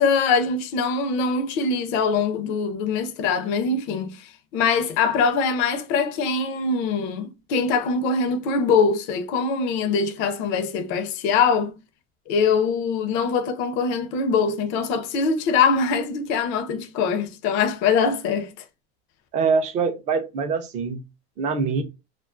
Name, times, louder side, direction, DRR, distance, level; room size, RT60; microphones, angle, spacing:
voice 1, 0.0-11.7 12.3-18.5, left 5 dB, 40° left, 0.4 m, -23 dB
voice 2, 19.3-21.0 21.4-21.8, right 5 dB, 25° right, 0.4 m, -24 dB
2.2 x 2.2 x 2.4 m
supercardioid pair, 145°, 32 cm